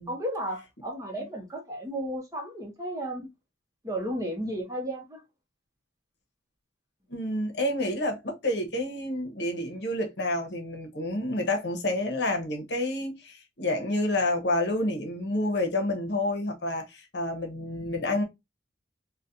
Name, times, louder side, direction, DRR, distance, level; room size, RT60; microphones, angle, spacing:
voice 1, 0.1-3.3 3.8-5.2, right 1 dB, 20° right, 0.8 m, -33 dB
voice 2, 7.1-18.2, left 1 dB, 60° left, 1.0 m, -29 dB
4.0 x 2.2 x 2.6 m
head